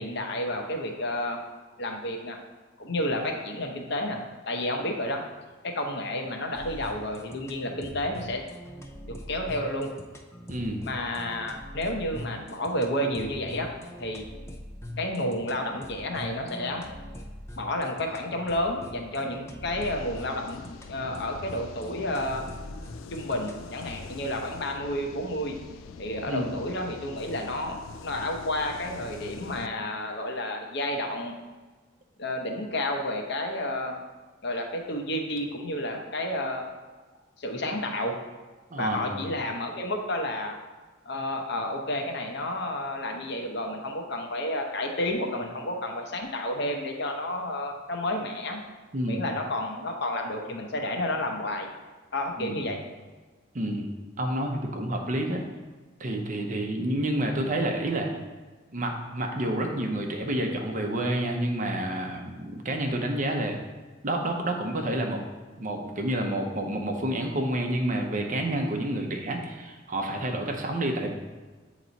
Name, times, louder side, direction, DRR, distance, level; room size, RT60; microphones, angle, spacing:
voice 1, 0.0-1.4 1.8-2.4 2.8-5.2 5.6-8.4 9.0-9.9 10.8-13.7 14.0-14.2 15.0-16.8 17.6-22.5 23.1-25.6 26.0-31.3 32.2-34.0 34.4-36.7 37.4-38.2 38.8-40.5 41.1-48.6 49.0-51.7 52.1-52.8, left 1 dB, 60° left, 3 dB, 0.8 m, -31 dB
sound 1, 6.5-24.1, left 1 dB, 15° left, 0.5 m, -43 dB
voice 2, 10.5-10.8 26.3-26.5 38.7-39.2 48.9-49.2 52.4-52.6 53.5-55.5 56.0-58.1 58.7-63.6 64.0-65.2 65.6-71.1, right 1 dB, 40° right, 2 dB, 0.7 m, -29 dB
sound 2, 19.7-29.7, left 5 dB, 90° left, 0.3 m, -44 dB
8.2 x 3.0 x 4.0 m, 1.3 s
head